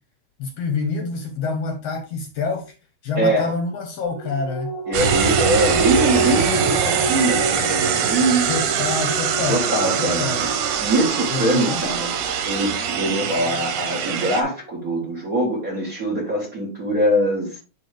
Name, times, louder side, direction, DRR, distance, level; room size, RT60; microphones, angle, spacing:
voice 1, 0.4-2.7 3.0-4.8 8.5-9.7 10.0-10.5 11.3-11.8, left 4 dB, 65° left, 1.7 m, -26 dB
voice 2, 3.1-3.5 4.9-8.5 9.5-10.5 10.8-12.1 12.4-17.6, right 1 dB, 40° right, 1.4 m, -23 dB
sound 1, 4.0-14.9 15.2-15.3, right 3 dB, 55° right, 4.6 m, -28 dB
sound 2, 4.9-14.4, right 8 dB, 85° right, 2.5 m, -23 dB
10.5 x 3.5 x 3.3 m
omnidirectional pair, 3.5 m